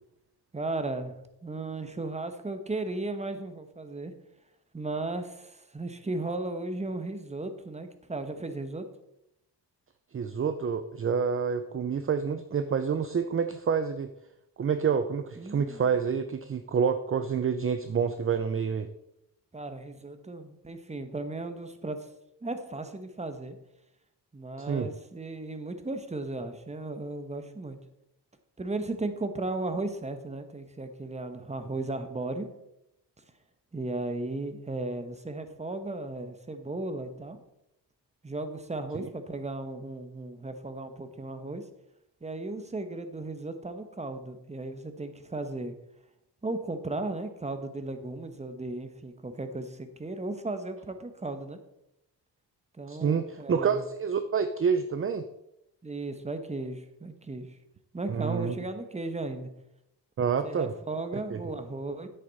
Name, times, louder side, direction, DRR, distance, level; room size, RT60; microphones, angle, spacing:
voice 1, 0.5-1.2 1.4-4.1 4.7-8.9 15.4-15.8 19.5-22.1 22.4-23.6 24.3-27.8 28.6-32.5 33.7-37.4 38.2-41.6 42.2-45.7 46.4-51.6 52.7-53.8 55.8-57.5 57.9-59.5 60.4-62.1, right 2 dB, 15° right, 8 dB, 1.1 m, -35 dB
voice 2, 10.1-14.1 14.6-18.9 24.6-24.9 39.0-39.1 52.9-55.2 58.1-58.5 60.2-60.7 61.3-61.5, right 6 dB, 35° right, 10 dB, 0.6 m, -28 dB
10.5 x 8.5 x 4.1 m, 0.83 s
cardioid pair, 105°, 40 cm